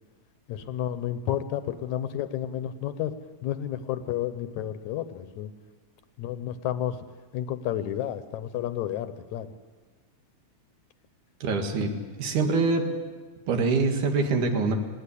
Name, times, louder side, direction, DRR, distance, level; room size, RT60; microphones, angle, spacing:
voice 1, 0.5-3.1 3.4-5.5 6.2-7.0 7.3-9.5, left 11 dB, 75° left, 12 dB, 2.1 m, -31 dB
voice 2, 11.4-11.9 12.2-12.8 13.5-14.8, right 4 dB, 80° right, 4 dB, 3.3 m, -24 dB
19.5 x 18.0 x 8.5 m, 1.4 s
omnidirectional pair, 3.5 m